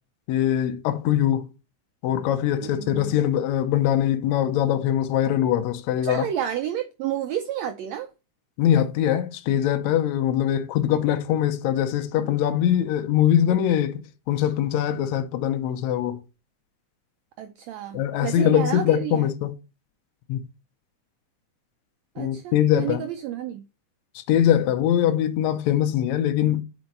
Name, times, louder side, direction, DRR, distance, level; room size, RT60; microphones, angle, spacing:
voice 1, 0.3-1.5 2.0-6.3 8.6-16.2 17.9-19.5 20.3-20.4 22.2-23.0 24.3-26.6, left 11 dB, 75° left, 1.9 m, -22 dB
voice 2, 2.6-3.2 6.0-8.1 17.4-19.3 22.2-23.6, right 10 dB, 75° right, 1.7 m, -30 dB
5.3 x 4.5 x 5.2 m
omnidirectional pair, 3.6 m